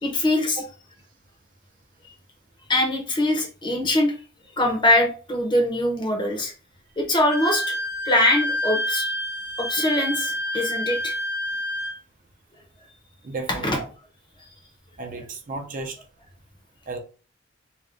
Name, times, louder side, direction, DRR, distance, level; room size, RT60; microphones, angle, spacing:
voice 1, 0.0-0.6 2.7-4.1 4.6-6.5 7.0-7.7 8.0-9.1 9.6-11.1 13.5-13.8, left 1 dB, 25° left, 0.7 m, -22 dB
Wind instrument woodwind instrument, 7.3-12.0, equal, 90° left, 1.1 m, -28 dB
voice 2, 13.2-13.9 15.0-16.0 16.9-17.0, right 3 dB, 45° right, 0.5 m, -33 dB
2.6 x 2.2 x 3.3 m
head